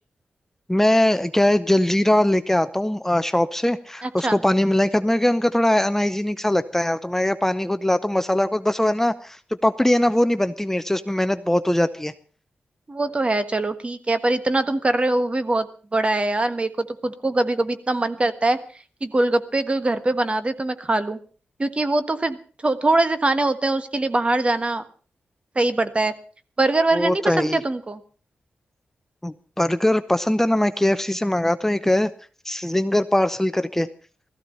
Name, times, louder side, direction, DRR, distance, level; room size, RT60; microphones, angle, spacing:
voice 1, 0.7-12.1 26.9-27.6 29.2-32.1 32.4-33.9, left 1 dB, 10° left, 12 dB, 0.8 m, -21 dB
voice 2, 4.0-4.4 12.9-18.6 19.0-21.2 21.6-22.4 22.6-24.8 25.5-26.1 26.6-28.0, right 2 dB, 35° right, 11 dB, 1.5 m, -22 dB
16.5 x 14.5 x 5.4 m, 0.39 s
cardioid pair, 65°, 4 cm